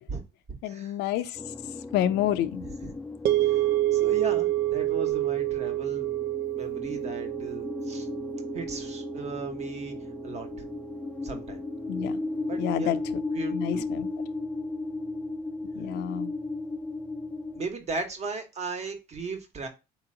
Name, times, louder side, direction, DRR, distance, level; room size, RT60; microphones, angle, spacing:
voice 1, 0.6-1.4 1.9-2.6 11.9-12.1 12.6-13.0 13.5-14.1 15.8-16.3, left 11 dB, 85° left, 0.5 m, -28 dB
sound 1, 1.3-17.7, left 2 dB, 10° left, 0.4 m, -36 dB
voice 2, 2.6-2.9 3.4-3.6 3.9-6.1 6.5-8.1 8.5-9.9 10.2-10.5 11.2-11.6 12.5-13.0 13.3-13.9 17.5-19.7, right 3 dB, 40° right, 1.2 m, -36 dB
sound 2, 3.2-11.5, right 15 dB, 85° right, 0.5 m, -29 dB
4.3 x 2.9 x 3.7 m
cardioid pair, 110°, 17 cm